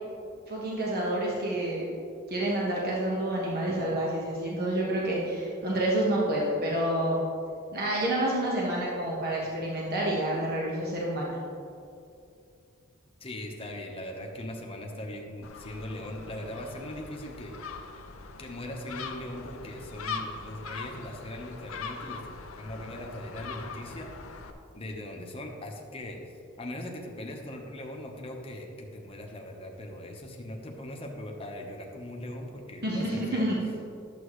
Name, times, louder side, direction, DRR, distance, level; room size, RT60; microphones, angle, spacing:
voice 1, 0.5-1.9 2.3-7.2 7.7-11.4 32.8-33.5, right 1 dB, 50° right, -5 dB, 1.3 m, -28 dB
voice 2, 13.2-17.5 18.4-22.2 22.6-24.1 24.7-26.2 26.6-33.5, left 1 dB, 30° left, 1 dB, 1.0 m, -40 dB
Gull seagull, 15.4-24.5, left 4 dB, 90° left, 0.7 m, -41 dB
11.5 x 7.7 x 3.2 m, 2.5 s
head